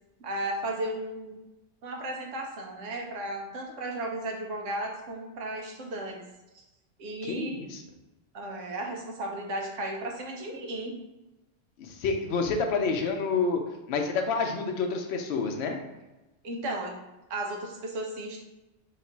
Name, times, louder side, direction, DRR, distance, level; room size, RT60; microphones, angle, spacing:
voice 1, 0.2-1.4 1.8-6.2 7.0-7.6 8.3-11.0 16.4-17.0 17.3-18.4, right 1 dB, 80° right, 1 dB, 1.1 m, -34 dB
voice 2, 7.2-7.8 11.8-13.6 13.9-15.8, left 4 dB, 65° left, 3 dB, 0.8 m, -28 dB
3.2 x 2.9 x 4.4 m, 1.0 s
omnidirectional pair, 1.3 m